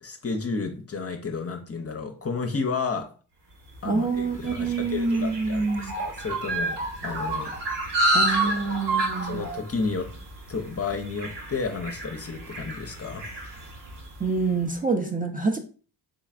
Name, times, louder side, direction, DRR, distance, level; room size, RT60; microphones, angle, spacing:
voice 1, 0.0-3.1 3.8-6.8 7.0-7.5 8.3-8.5 9.2-10.1 10.5-13.3, left 4 dB, 30° left, 5 dB, 0.7 m, -32 dB
voice 2, 3.8-5.9 8.1-9.5 14.2-15.6, right 4 dB, 20° right, 3 dB, 0.6 m, -26 dB
sound 1, 3.8-14.3, right 1 dB, 60° right, 1.5 m, -30 dB
3.9 x 3.2 x 2.4 m, 0.38 s
supercardioid pair, 45°, 47 cm